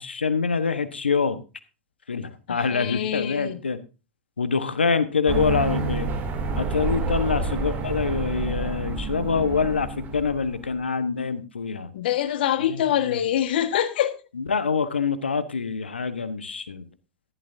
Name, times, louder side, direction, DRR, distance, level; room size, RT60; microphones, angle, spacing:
voice 1, 0.0-1.4 2.1-3.8 4.4-6.1 6.6-11.9 12.7-13.2 14.5-16.9, left 5 dB, 85° left, 1.3 m, -25 dB
voice 2, 2.5-3.6 11.9-14.2, left 10 dB, 65° left, 1.6 m, -25 dB
sound 1, 5.3-10.7, right 3 dB, 35° right, 2.7 m, -28 dB
14.5 x 11.5 x 2.7 m
hypercardioid pair, 100°, 6 cm